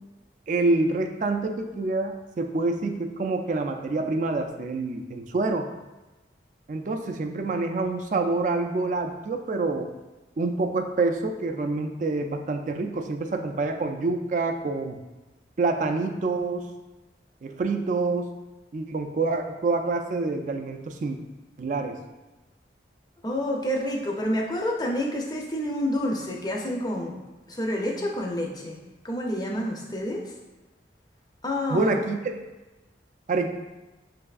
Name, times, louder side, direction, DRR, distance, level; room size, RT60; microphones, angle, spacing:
voice 1, 0.5-5.7 6.7-9.9 10.4-15.0 15.6-16.7 17.4-18.3 18.7-21.2 21.6-22.0 31.7-32.3 33.3-33.5, right 3 dB, 40° right, 5 dB, 0.3 m, -27 dB
voice 2, 23.2-27.1 27.5-28.8 29.0-30.3 31.4-32.0, equal, 20° left, 0 dB, 0.5 m, -28 dB
5.4 x 3.3 x 2.4 m, 1.1 s
head